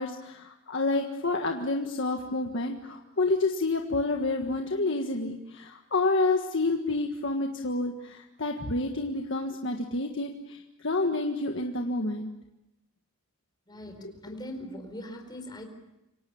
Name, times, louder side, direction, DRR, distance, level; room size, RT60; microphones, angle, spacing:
voice 1, 0.0-12.3 14.0-14.1, left 2 dB, 60° left, 3 dB, 1.7 m, -29 dB
voice 2, 13.7-15.7, left 1 dB, 20° left, 4 dB, 4.5 m, -41 dB
27.5 x 25.0 x 7.2 m, 0.93 s
head